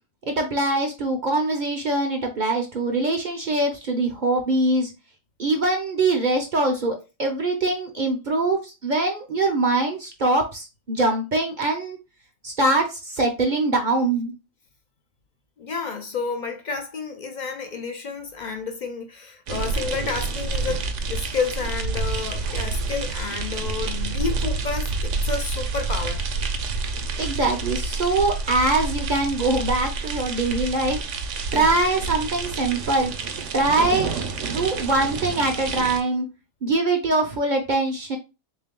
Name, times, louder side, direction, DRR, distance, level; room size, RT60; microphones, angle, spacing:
voice 1, 0.3-4.9 5.4-12.0 12.4-14.3 27.2-31.0 31.5-33.1 33.5-34.1 34.4-36.3 36.6-38.2, right 2 dB, 50° right, 0.6 m, -23 dB
voice 2, 15.6-26.2 31.5-31.8, left 5 dB, 65° left, 0.4 m, -30 dB
sound 1, 19.5-36.0, right 3 dB, 70° right, 1.0 m, -28 dB
3.6 x 2.7 x 3.6 m
omnidirectional pair, 1.4 m